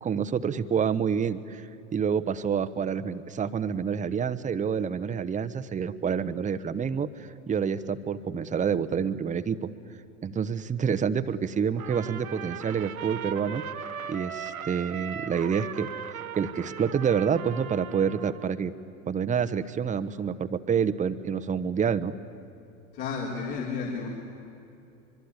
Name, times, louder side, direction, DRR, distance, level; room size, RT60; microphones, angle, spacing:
voice 1, 0.0-9.7 10.2-13.6 14.1-15.9 16.4-18.7 19.1-22.1, right 7 dB, 20° right, 11 dB, 1.0 m, -28 dB
Trumpet, 11.8-18.5, right 8 dB, 80° right, 1.4 m, -38 dB
voice 2, 22.9-24.1, left 5 dB, 55° left, -3 dB, 4.2 m, -32 dB
24.5 x 23.5 x 9.8 m, 2.7 s
figure-of-eight pair, 80°, 41 cm